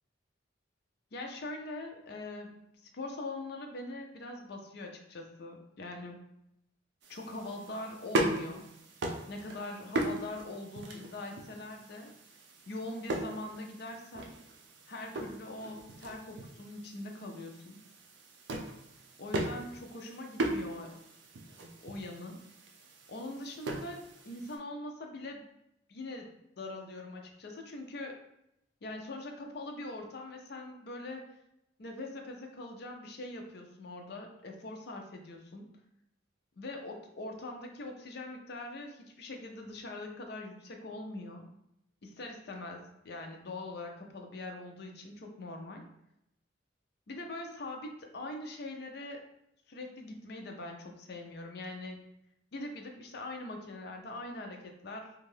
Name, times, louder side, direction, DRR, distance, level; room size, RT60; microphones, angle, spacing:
voice 1, 1.1-2.6 2.9-6.2 7.1-8.6 9.3-12.1 12.7-14.4 14.9-17.8 19.2-20.9 21.8-22.4 23.1-25.4 25.9-26.3 26.6-28.2 28.8-31.3 31.8-35.7 36.6-41.5 42.0-45.8 47.1-49.2 49.7-52.0 52.5-55.1, left 2 dB, 55° left, 3 dB, 0.4 m, -42 dB
sound 1, 7.0-24.6, right 1 dB, 65° right, 0.4 m, -39 dB
2.6 x 2.3 x 3.2 m, 0.81 s
head